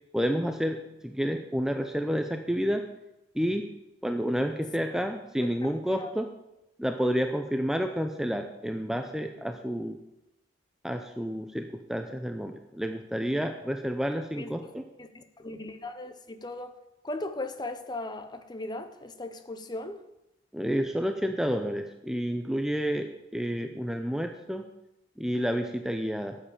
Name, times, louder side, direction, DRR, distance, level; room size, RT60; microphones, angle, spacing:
voice 1, 0.1-2.8 3.3-3.7 4.0-6.3 6.8-10.0 10.8-14.8 20.5-24.7 25.2-26.4, equal, 5° right, 5 dB, 0.5 m, -30 dB
voice 2, 5.4-6.1 14.3-14.5 15.0-16.7 17.0-20.0, left 2 dB, 20° left, 9 dB, 0.8 m, -38 dB
13.5 x 7.5 x 5.0 m, 0.91 s
head